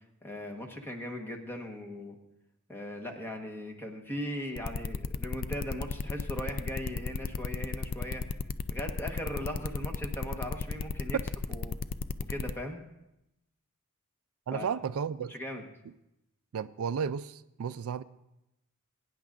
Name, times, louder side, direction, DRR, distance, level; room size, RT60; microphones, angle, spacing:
voice 1, 0.2-2.2 2.7-8.2 8.7-11.2 11.5-11.8 12.3-12.8 14.5-14.7 15.3-15.6, left 1 dB, 10° left, 1.2 m, -38 dB
sound 1, 4.6-12.5, left 4 dB, 40° left, 0.4 m, -34 dB
voice 2, 14.5-15.3 16.5-18.0, right 7 dB, 70° right, 0.4 m, -33 dB
22.0 x 9.5 x 2.5 m
head